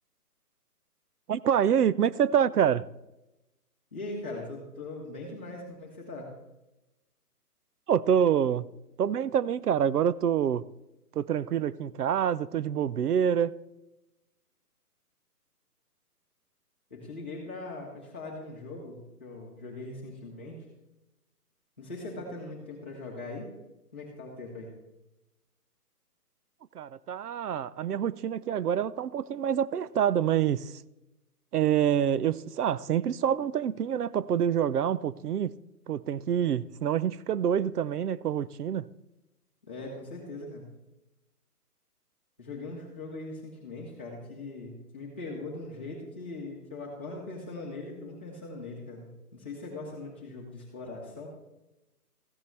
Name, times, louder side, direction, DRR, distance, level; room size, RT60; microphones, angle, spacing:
voice 1, 1.3-2.9 7.9-10.6 11.1-13.5 26.7-30.8 31.5-35.5 35.9-38.9, right 9 dB, 75° right, 0.6 m, -26 dB
voice 2, 3.9-6.3 16.9-20.6 21.8-23.5 23.9-24.7 39.7-40.6 42.4-51.3, left 2 dB, 5° left, 0.9 m, -40 dB
14.5 x 9.6 x 3.3 m
hypercardioid pair, 180°, 47 cm